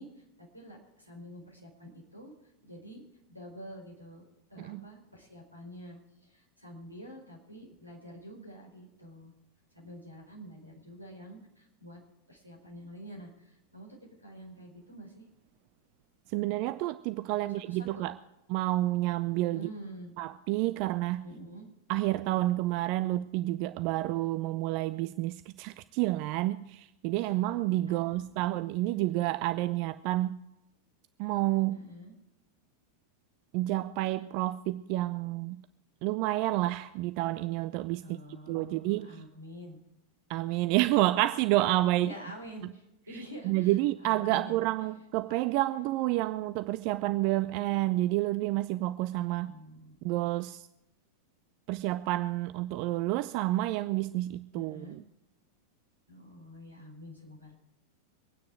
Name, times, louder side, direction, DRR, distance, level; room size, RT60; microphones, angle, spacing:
voice 1, 0.0-2.3 2.6-3.0 3.3-4.2 4.5-9.3 9.7-12.0 12.3-15.3 17.4-18.1 19.5-20.1 21.2-21.7 27.2-27.4 27.9-28.7 31.7-32.1 38.0-39.8 41.9-44.9 49.3-49.9 54.5-55.0 56.1-57.5, equal, 85° right, 4.5 m, -47 dB
voice 2, 16.3-18.2 18.5-19.7 20.2-21.2 21.9-30.4 31.2-31.8 33.5-35.6 36.0-38.2 38.5-39.2 40.3-42.1 43.4-49.5 50.0-50.7 51.7-55.0, right 17 dB, 45° right, 0.4 m, -29 dB
24.0 x 9.5 x 4.7 m
figure-of-eight pair, 90°, 0 cm